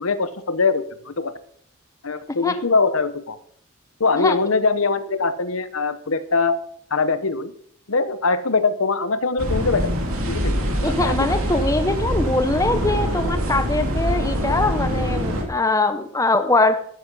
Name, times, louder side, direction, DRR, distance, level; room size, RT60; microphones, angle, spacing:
voice 1, 0.0-1.3 2.0-3.4 4.0-6.6 6.9-7.5 7.9-10.0 10.3-11.3, left 4 dB, 70° left, 13 dB, 0.9 m, -22 dB
sound 1, 9.4-15.4, equal, 80° right, 2.4 m, -24 dB
voice 2, 10.8-16.8, left 2 dB, 15° left, 9 dB, 0.7 m, -22 dB
12.0 x 10.0 x 5.4 m, 0.64 s
head